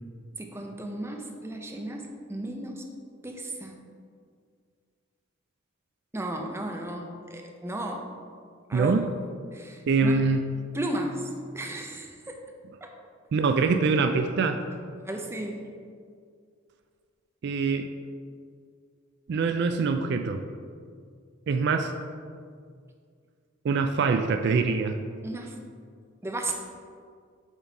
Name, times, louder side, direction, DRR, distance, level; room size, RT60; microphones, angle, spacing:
voice 1, 0.4-2.8 3.2-3.8 6.1-8.1 8.7-8.9 9.5-10.2 10.7-11.3 11.5-12.4 12.8-13.0 15.0-15.6 25.2-25.6 26.2-26.5, right 1 dB, 15° right, 2 dB, 0.6 m, -34 dB
voice 2, 8.7-9.1 9.9-10.5 13.3-14.6 17.4-17.9 19.3-20.4 21.5-21.9 23.6-25.0, right 4 dB, 55° right, 7 dB, 0.3 m, -24 dB
7.2 x 4.1 x 4.7 m, 2.1 s
head